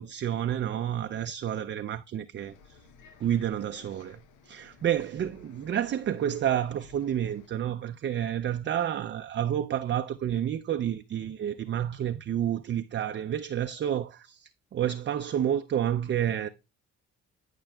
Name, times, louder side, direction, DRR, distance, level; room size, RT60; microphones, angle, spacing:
voice 1, 0.0-2.9 3.2-16.5, right 10 dB, 40° right, 0.4 m, -30 dB
Bus, 2.4-7.5, left 4 dB, 90° left, 0.9 m, -54 dB
14.0 x 5.9 x 2.3 m
cardioid pair, 90°, 30 cm